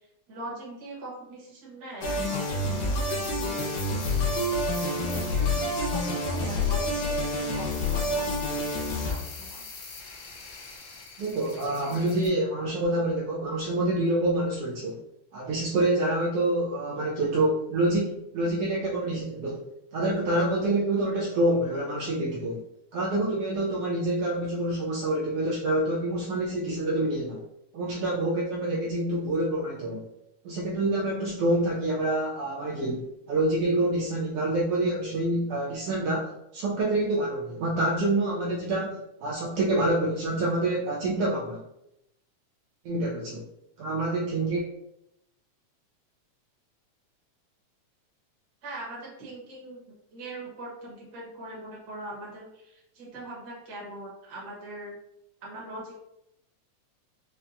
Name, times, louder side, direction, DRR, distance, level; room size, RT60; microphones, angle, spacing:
voice 1, 0.0-4.3 4.9-9.6 48.6-49.8 50.1-54.9 55.4-55.9, right 1 dB, 50° right, -5 dB, 1.2 m, -41 dB
sound 1, 2.0-9.1, left 2 dB, 90° left, 2.4 m, -28 dB
sound 2, 3.1-12.3, left 4 dB, 75° left, 1.7 m, -44 dB
voice 2, 11.2-15.0 15.3-19.6 19.9-22.6 22.9-27.4 27.7-30.1 30.4-41.6 42.8-43.5 43.8-44.7, right 1 dB, 85° right, -4 dB, 1.3 m, -27 dB
5.5 x 2.2 x 2.5 m, 0.82 s
omnidirectional pair, 3.3 m